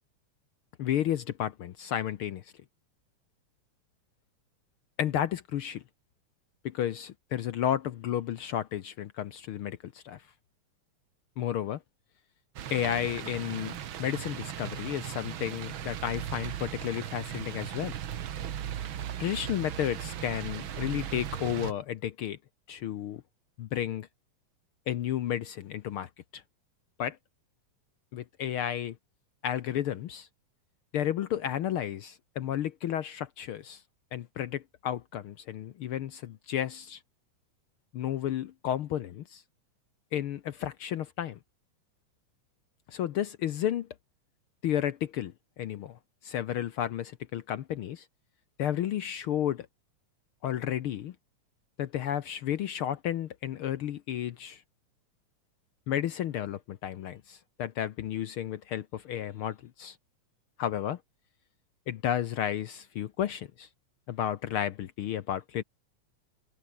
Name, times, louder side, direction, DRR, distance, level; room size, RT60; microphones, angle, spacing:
voice 1, 0.8-2.5 5.0-5.8 6.6-10.2 11.4-11.8 12.7-17.9 19.2-22.4 22.7-23.2 23.6-24.1 24.9-26.4 27.0-27.2 28.1-29.0 29.4-30.3 30.9-33.8 34.1-37.0 37.9-39.4 40.1-41.4 42.9-43.9 44.6-48.1 48.6-49.7 50.4-51.1 51.8-54.6 55.9-60.0 60.6-61.0 61.9-63.7 64.1-65.6, left 10 dB, 70° left, 1.2 m, -32 dB
sound 1, 12.6-21.7, right 10 dB, 55° right, 1.6 m, -37 dB
omnidirectional pair, 3.5 m